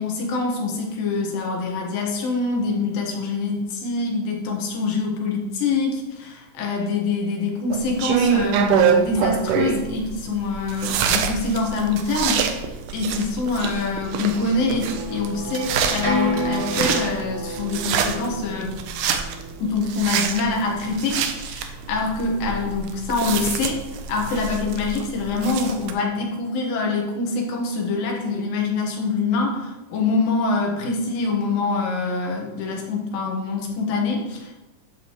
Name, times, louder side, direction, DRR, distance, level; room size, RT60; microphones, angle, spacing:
voice 1, 0.0-12.5 12.9-18.8 19.6-23.8 24.1-34.5, left 3 dB, 85° left, 0 dB, 3.2 m, -25 dB
sound 1, 7.7-25.9, right 7 dB, 75° right, 2.1 m, -26 dB
sound 2, 13.9-19.7, left 1 dB, 55° right, 0.6 m, -30 dB
12.0 x 7.4 x 3.1 m, 1.1 s
omnidirectional pair, 3.9 m